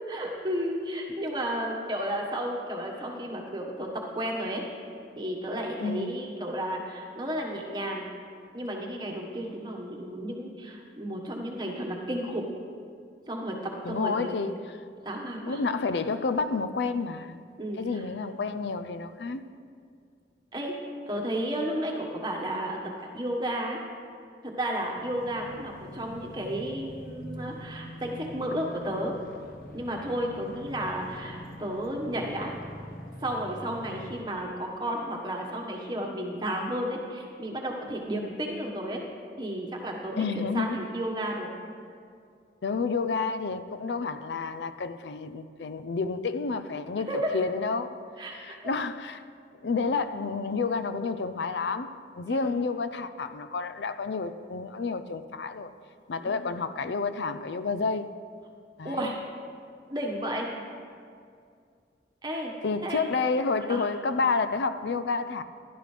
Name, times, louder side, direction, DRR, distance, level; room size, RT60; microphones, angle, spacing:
voice 1, 0.0-4.8 5.2-8.1 8.5-12.5 13.3-14.4 15.0-15.6 17.6-18.0 20.5-20.8 21.1-23.8 24.4-29.1 29.7-32.5 33.2-39.0 39.4-41.5 47.1-47.3 48.2-48.6 52.3-52.6 56.2-56.5 58.8-59.2 59.9-60.5 62.2-62.5 62.8-63.1 63.7-63.8, right 1 dB, 25° right, 0 dB, 1.4 m, -33 dB
voice 2, 13.8-14.6 15.4-17.4 17.8-19.4 40.2-40.8 42.6-47.1 47.3-48.0 48.3-49.2 49.6-55.7 56.1-58.1 58.8-59.1 62.6-65.4, left 4 dB, 80° left, 11 dB, 0.5 m, -30 dB
sound 1, 25.0-34.2, equal, 55° left, 1.1 m, -44 dB
15.5 x 12.0 x 3.3 m, 2.3 s
head